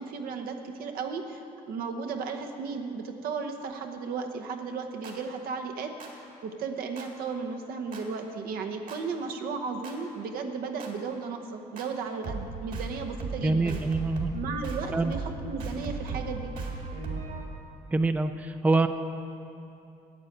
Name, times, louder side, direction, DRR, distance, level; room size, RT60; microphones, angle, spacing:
voice 1, 0.0-13.8 14.3-16.5, right 5 dB, 80° right, 4 dB, 1.0 m, -35 dB
sound 1, 5.0-5.1 6.0-6.1 7.0-7.1 7.9-8.0 8.9-9.0 9.8-9.9 10.8-10.9 11.8-11.9 12.2-12.5 12.7-12.9 13.2-13.4 13.7-14.4 14.6-14.9 15.1-15.3 15.6-17.5, right 4 dB, 60° right, 2.1 m, -35 dB
voice 2, 13.4-14.3 14.9-15.1 17.9-18.9, right 3 dB, 10° right, 9 dB, 0.4 m, -25 dB
8.8 x 8.6 x 8.0 m, 2.7 s
cardioid pair, 110°, 15 cm